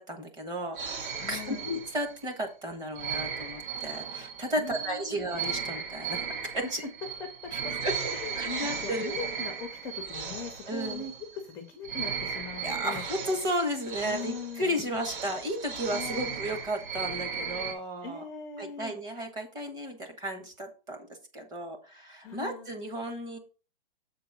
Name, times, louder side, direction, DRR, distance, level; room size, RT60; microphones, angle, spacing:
voice 1, 0.0-6.8 7.5-7.9 8.3-9.3 10.7-11.1 12.6-18.2 18.6-21.0 21.3-23.4, equal, 15° right, 4 dB, 0.9 m, -34 dB
sound 1, 0.8-2.3 2.9-11.5 11.8-17.7, right 6 dB, 60° right, 1.9 m, -36 dB
voice 2, 1.2-1.7 4.6-5.2 6.6-6.7 7.2-13.0 14.0-15.0 15.8-16.4 18.0-18.9 22.2-22.7, left 5 dB, 10° left, 3 dB, 0.5 m, -41 dB
7.4 x 3.9 x 5.8 m, 0.35 s
hypercardioid pair, 160°, 29 cm